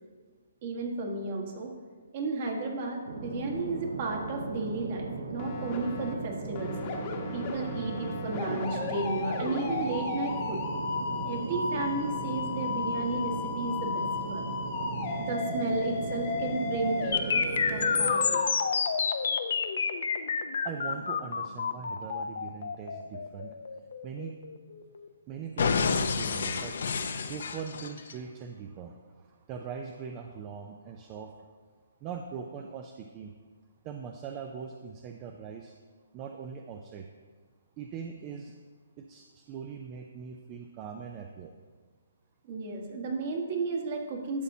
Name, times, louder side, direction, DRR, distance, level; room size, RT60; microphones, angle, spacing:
voice 1, 0.6-1.7 2.1-6.8 7.3-10.6 11.2-14.4 15.2-17.4 17.7-18.4 42.5-44.4, right 3 dB, 40° right, 1 dB, 1.4 m, -33 dB
sound 1, 3.1-18.2, right 4 dB, 80° right, 1.0 m, -38 dB
sound 2, 5.4-6.1 6.6-18.5, left 4 dB, 30° left, 1.0 m, -35 dB
sound 3, 17.1-25.1 25.6-28.1, left 5 dB, 65° left, 0.6 m, -29 dB
voice 2, 20.6-23.5 24.0-24.3 25.3-26.8 27.3-31.5 32.0-33.3 33.8-35.7 36.1-37.1 37.8-38.5 39.0-41.5, right 6 dB, 25° right, 4 dB, 0.4 m, -41 dB
11.5 x 6.9 x 2.7 m, 1.5 s
hypercardioid pair, 155°, 0 cm